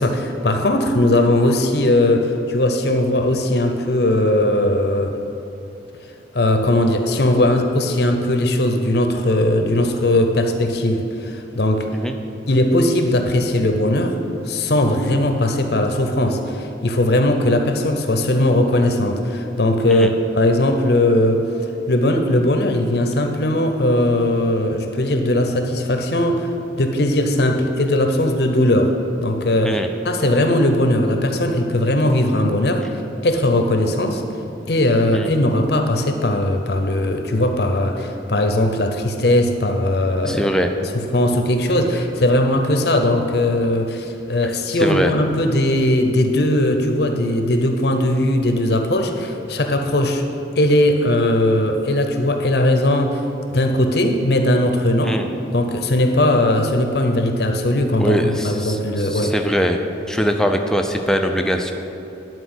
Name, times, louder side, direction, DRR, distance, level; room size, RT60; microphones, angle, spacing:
voice 1, 0.0-5.1 6.3-11.9 12.5-14.2 14.5-21.4 21.9-26.5 26.8-28.9 29.2-29.8 30.0-32.8 33.2-34.2 34.7-40.5 41.1-50.2 50.6-53.2 53.5-55.2 55.5-58.1 58.4-59.3, left 1 dB, 60° left, 5 dB, 0.7 m, -19 dB
voice 2, 40.3-40.7 44.4-45.1 55.0-55.3 58.0-59.8 60.1-61.7, equal, 5° left, 4 dB, 0.5 m, -22 dB
10.5 x 4.5 x 7.8 m, 2.8 s
head